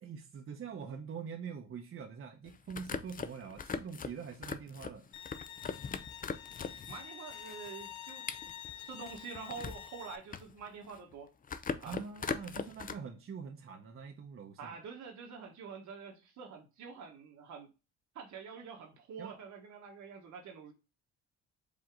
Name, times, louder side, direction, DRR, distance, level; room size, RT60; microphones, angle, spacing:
voice 1, 0.0-5.1 11.8-14.8 19.2-19.3, right 6 dB, 45° right, 0.8 m, -44 dB
sound 1, 2.5-7.0 7.3-9.9 10.2-11.1 11.4-12.9, left 6 dB, 30° left, 0.5 m, -40 dB
Bowed string instrument, 5.1-10.2, left 10 dB, 80° left, 0.6 m, -48 dB
voice 2, 6.9-8.3 8.8-11.3 11.8-12.0 14.6-17.7 18.1-20.7, right 6 dB, 70° right, 1.4 m, -47 dB
5.1 x 2.8 x 3.6 m
cardioid pair, 90°, 30 cm